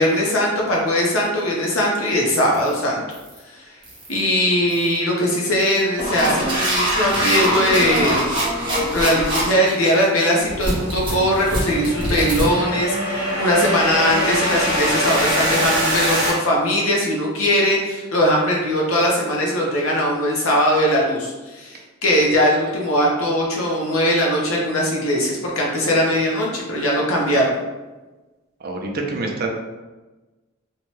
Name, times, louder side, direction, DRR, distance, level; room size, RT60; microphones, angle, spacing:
voice 1, 0.0-3.0 3.5-3.6 4.1-8.3 8.9-27.5, equal, 75° left, -2 dB, 0.7 m, -20 dB
sound 1, 2.5-2.7 3.1-3.4 3.8-4.2 4.7-5.0 5.6-16.3, equal, 25° right, 0.8 m, -23 dB
voice 2, 28.6-29.5, right 3 dB, 45° right, 2 dB, 0.4 m, -26 dB
2.7 x 2.2 x 3.0 m, 1.2 s
head